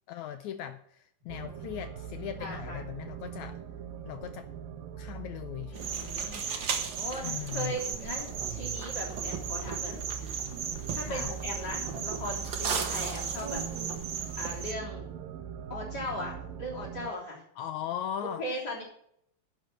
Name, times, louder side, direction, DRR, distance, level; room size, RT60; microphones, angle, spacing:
voice 1, 0.1-3.6 4.0-4.5 4.9-5.8 7.2-7.8 11.0-11.3 17.6-18.4, left 11 dB, 80° left, 9 dB, 1.7 m, -38 dB
sound 1, 1.3-17.1, right 8 dB, 85° right, 2.4 m, -42 dB
voice 2, 2.4-2.8 5.7-6.5 6.9-10.4 10.9-13.6 14.4-15.0 15.7-17.4 18.2-18.8, left 1 dB, 30° left, -5 dB, 3.8 m, -38 dB
sound 2, 5.7-14.7, right 6 dB, 65° right, 1.2 m, -35 dB
11.5 x 6.1 x 7.8 m, 0.69 s
omnidirectional pair, 3.9 m